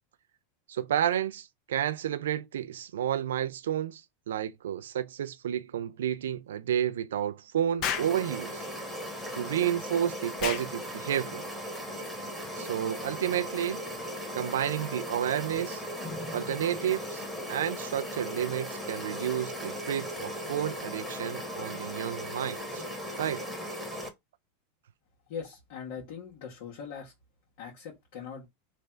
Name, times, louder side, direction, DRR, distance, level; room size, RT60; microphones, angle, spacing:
voice 1, 0.7-8.6 9.3-11.5 12.6-13.8 14.3-15.8 16.3-17.2 17.5-22.8 23.2-23.4, right 10 dB, 85° right, 0.3 m, -31 dB
Explosion, 7.8-8.2 10.4-10.7, left 8 dB, 45° left, 0.7 m, -31 dB
sound 1, 7.9-24.1, equal, 5° left, 1.3 m, -37 dB
voice 2, 25.3-27.1 27.6-28.5, left 6 dB, 65° left, 1.4 m, -41 dB
3.3 x 2.5 x 4.3 m
hypercardioid pair, 115°, 0 cm